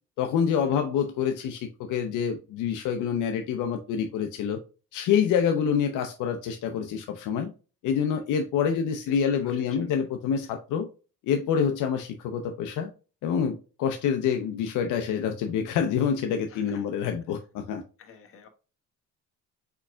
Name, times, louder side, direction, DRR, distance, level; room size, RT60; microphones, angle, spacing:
voice 1, 0.2-4.6 4.9-7.5 7.8-10.9 11.2-12.9 13.2-17.8, left 7 dB, 70° left, 5 dB, 0.7 m, -27 dB
voice 2, 9.1-10.1 16.5-16.9 18.0-18.5, left 6 dB, 45° left, 4 dB, 1.2 m, -50 dB
4.7 x 4.6 x 2.3 m, 0.34 s
cardioid pair, 140°, 32 cm